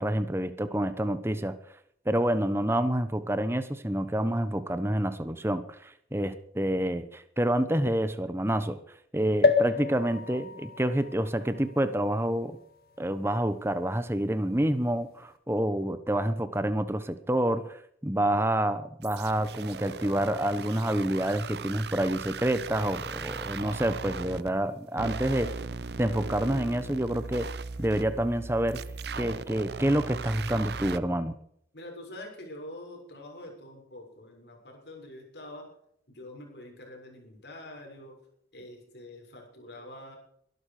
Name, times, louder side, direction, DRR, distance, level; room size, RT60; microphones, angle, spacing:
voice 1, 0.0-1.5 2.0-8.8 9.1-12.6 13.0-17.7 18.0-25.5 26.0-27.5 27.8-28.8 29.1-31.3, right 1 dB, 15° right, 11 dB, 1.1 m, -28 dB
sound 1, 9.4-13.1 13.7-13.8 14.0-14.1, left 4 dB, 55° left, 1.9 m, -29 dB
sound 2, 19.0-24.5 25.0-31.0, right 4 dB, 70° right, 0.8 m, -38 dB
voice 2, 31.7-35.7 36.1-38.2 38.5-40.2, left 1 dB, 75° left, 1 dB, 6.5 m, -45 dB
22.5 x 12.0 x 5.1 m, 0.69 s
head